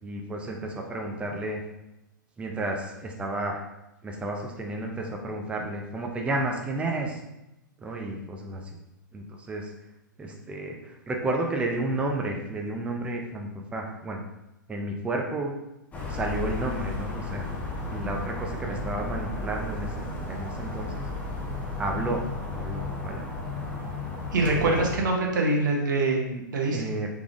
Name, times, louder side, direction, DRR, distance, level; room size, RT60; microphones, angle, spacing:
voice 1, 0.0-1.6 2.4-3.7 4.0-7.2 7.8-8.6 9.1-9.7 10.2-14.2 14.7-15.5 16.1-17.5 17.9-21.1 21.8-22.3 22.5-23.3 24.6-24.7 26.3-27.1, right 2 dB, 10° right, 1 dB, 0.5 m, -32 dB
sound 1, 15.9-25.0, left 2 dB, 15° left, 0.8 m, -34 dB
voice 2, 24.3-26.2 26.5-26.8, right 2 dB, 65° right, 0 dB, 0.9 m, -24 dB
3.4 x 3.4 x 2.5 m, 0.91 s
figure-of-eight pair, 110°, 11 cm